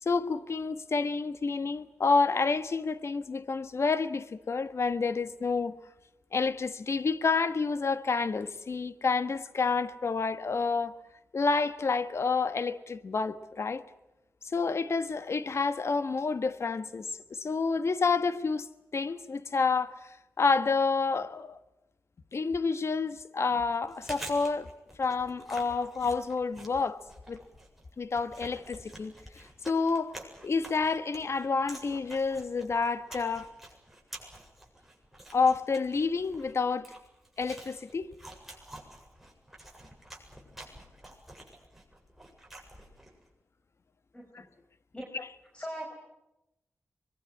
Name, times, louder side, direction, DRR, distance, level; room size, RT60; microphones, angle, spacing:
voice 1, 0.0-5.8 6.3-11.0 11.3-13.8 14.5-21.6 22.3-24.7 25.0-27.0 27.3-27.4 28.0-30.2 30.4-33.5 35.3-36.9 37.4-38.1, left 4 dB, 60° left, 1.4 m, -29 dB
Chewing mastication, 23.7-43.2, right 1 dB, 5° right, 7.9 m, -49 dB
voice 2, 44.1-44.6 44.9-45.1 45.5-45.9, equal, 20° left, 5.2 m, -40 dB
25.0 x 22.0 x 8.5 m
cardioid pair, 60°, 5 cm